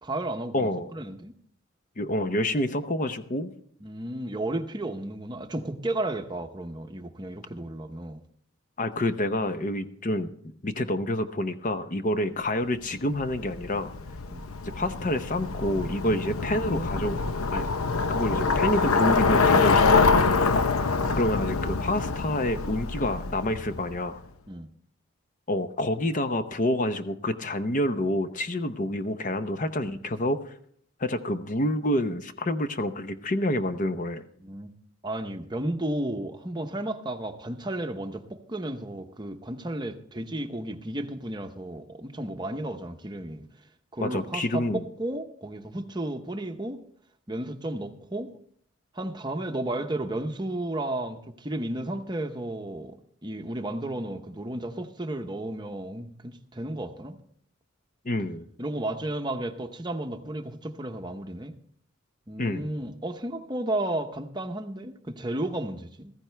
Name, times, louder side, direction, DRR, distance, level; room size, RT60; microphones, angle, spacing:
voice 1, 0.0-1.3 3.8-8.2 14.3-14.5 16.4-16.9 24.5-24.7 34.4-34.7 35.0-43.5 43.9-46.8 47.3-48.3 48.9-53.0 53.2-57.2 58.6-61.5 62.3-66.1, right 1 dB, 20° right, 0.8 m, -33 dB
voice 2, 0.5-0.9 2.0-3.5 8.8-10.3 10.6-13.9 14.6-17.2 17.5-17.7 18.1-20.1 21.2-24.2 25.5-30.5 31.0-34.2 44.0-44.8 58.0-58.5 62.4-62.7, left 1 dB, 35° left, 0.7 m, -28 dB
Bicycle, 13.1-24.0, left 4 dB, 90° left, 0.8 m, -25 dB
15.0 x 14.5 x 3.3 m
head